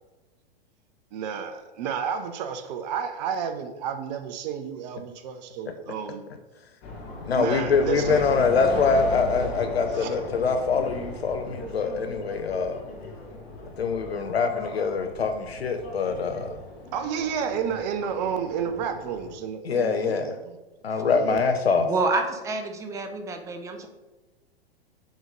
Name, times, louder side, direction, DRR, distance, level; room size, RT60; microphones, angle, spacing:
voice 1, 1.1-6.2 7.3-8.2 9.9-10.2 16.9-20.6 21.0-21.5, right 7 dB, 45° right, 7 dB, 0.7 m, -31 dB
sound 1, 6.8-19.3, left 2 dB, 35° left, 1.7 m, -37 dB
voice 2, 7.3-12.8 13.8-16.5 19.7-20.3 20.8-21.9, left 5 dB, 85° left, 7 dB, 0.6 m, -24 dB
voice 3, 21.8-23.9, right 3 dB, 10° right, 5 dB, 0.6 m, -28 dB
5.1 x 3.8 x 5.1 m, 1.1 s
figure-of-eight pair, 105°, 31 cm